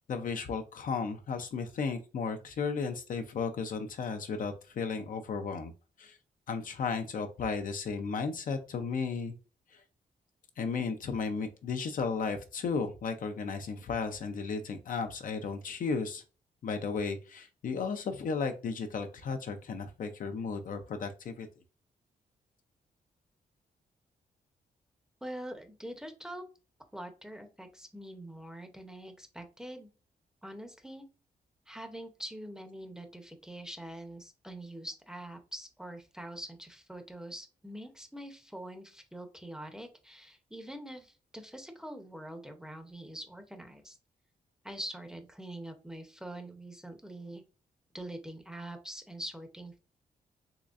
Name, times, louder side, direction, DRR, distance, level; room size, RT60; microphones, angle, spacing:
voice 1, 0.1-5.7 6.0-6.2 6.5-9.3 9.7-9.8 10.6-16.2 16.6-21.5, left 5 dB, 60° left, 7 dB, 0.5 m, -34 dB
voice 2, 25.2-26.4 26.9-29.9 30.4-31.0 31.7-44.0 44.6-47.4 47.9-49.8, right 1 dB, 5° right, 6 dB, 0.7 m, -44 dB
3.7 x 3.1 x 2.5 m, 0.33 s
cardioid pair, 100°, 16 cm